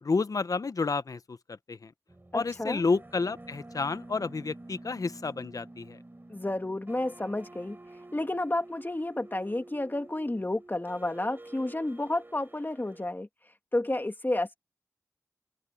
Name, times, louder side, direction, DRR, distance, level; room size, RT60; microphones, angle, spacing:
voice 1, 0.0-1.9 2.3-6.0, left 4 dB, 80° left, 0.7 m, -30 dB
sound 1, 2.1-13.1, right 2 dB, 35° right, 6.1 m, -49 dB
voice 2, 2.3-2.8 6.3-7.8 8.1-13.3 13.7-14.6, left 1 dB, 35° left, 2.6 m, -31 dB
wide cardioid pair, 45°, 6 cm